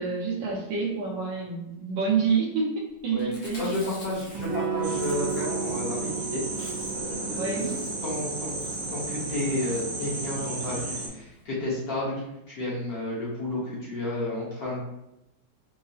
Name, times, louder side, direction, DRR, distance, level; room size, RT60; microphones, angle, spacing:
voice 1, 0.0-2.7 3.0-3.8 7.4-7.8, right 5 dB, 75° right, -3 dB, 1.4 m, -27 dB
Chewing mastication, 3.2-5.8 6.1-6.2 6.4-7.1 7.4-8.1 8.6-8.9 9.5-9.8 10.5-10.7 11.0-11.1 11.3-11.4, left 1 dB, 75° left, 1.7 m, -47 dB
voice 2, 3.6-8.6 8.9-14.8, left 1 dB, 55° left, -7 dB, 1.4 m, -32 dB
Electric guitar / Strum, 4.3-9.7, right 7 dB, 90° right, 1.4 m, -35 dB
sound 1, 4.8-11.1, right 2 dB, 55° right, 1.2 m, -34 dB
4.7 x 2.1 x 2.7 m, 0.89 s
omnidirectional pair, 2.1 m